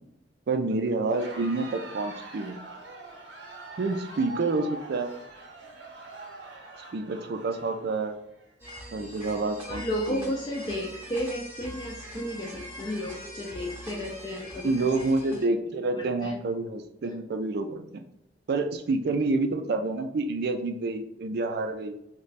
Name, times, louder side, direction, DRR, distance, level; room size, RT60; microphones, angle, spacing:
voice 1, 0.5-2.6 3.8-5.1 6.9-8.2 8.9-10.3 14.6-18.0 18.5-21.9, right 3 dB, 60° right, 6 dB, 0.4 m, -28 dB
Crowd, 1.0-8.5, right 2 dB, 85° right, 0.7 m, -44 dB
sound 1, 8.6-15.5, equal, 15° right, 0.9 m, -43 dB
voice 2, 9.7-14.8 16.0-16.3, equal, 25° left, -1 dB, 0.4 m, -33 dB
3.2 x 2.2 x 4.0 m, 0.83 s
head